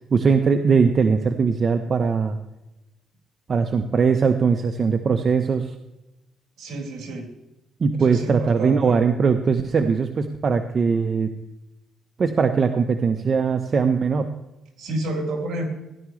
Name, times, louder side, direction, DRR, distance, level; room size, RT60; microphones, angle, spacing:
voice 1, 0.1-2.4 3.5-5.7 7.8-11.3 12.2-14.3, right 5 dB, 45° right, 8 dB, 0.8 m, -20 dB
voice 2, 6.6-7.3 8.0-8.9 14.8-15.7, right 1 dB, 70° right, 1 dB, 3.7 m, -29 dB
16.5 x 11.0 x 3.2 m, 0.96 s
cardioid pair, 90°, 0 cm